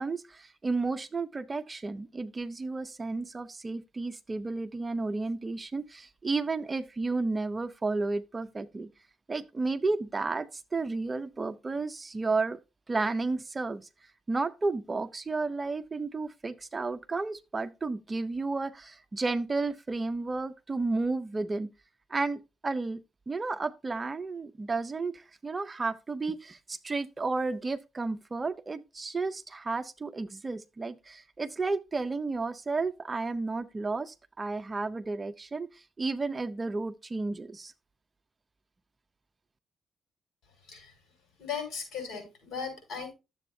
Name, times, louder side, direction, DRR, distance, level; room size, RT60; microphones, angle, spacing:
voice 1, 0.0-8.9 9.3-12.6 12.9-13.9 14.3-21.7 22.1-23.0 23.3-37.7, right 3 dB, 25° right, 0.5 m, -32 dB
voice 2, 40.6-40.9 41.4-43.1, left 6 dB, 65° left, 6.6 m, -37 dB
12.0 x 7.7 x 2.7 m
cardioid pair, 90°, 0 cm